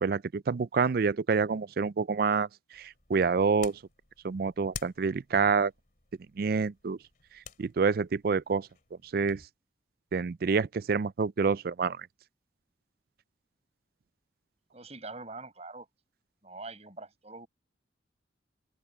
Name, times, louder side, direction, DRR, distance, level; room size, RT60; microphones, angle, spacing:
voice 1, 0.0-2.5 2.7-3.8 4.2-5.7 6.4-7.0 7.6-8.7 9.1-9.4 10.1-12.1, right 5 dB, 50° right, 0.4 m, -27 dB
sound 1, 2.7-9.5, left 6 dB, 50° left, 2.8 m, -50 dB
voice 2, 14.7-15.9 16.4-17.5, right 3 dB, 35° right, 6.6 m, -44 dB
open air
head